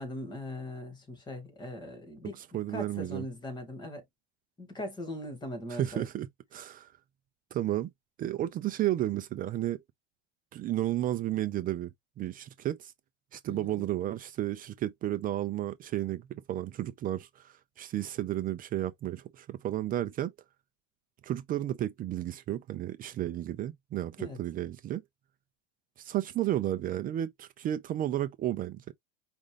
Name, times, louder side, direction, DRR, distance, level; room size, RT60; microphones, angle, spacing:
voice 1, 0.0-2.4 2.7-4.0 4.6-6.1 13.5-13.8 24.2-24.4, left 1 dB, 15° left, 1.8 m, -40 dB
voice 2, 2.3-3.3 5.7-6.9 7.5-7.9 8.2-9.8 10.5-11.9 12.2-12.9 13.3-20.3 21.2-25.0 26.0-28.9, right 13 dB, 30° right, 0.5 m, -32 dB
5.3 x 2.5 x 3.3 m
supercardioid pair, 135°, 30 cm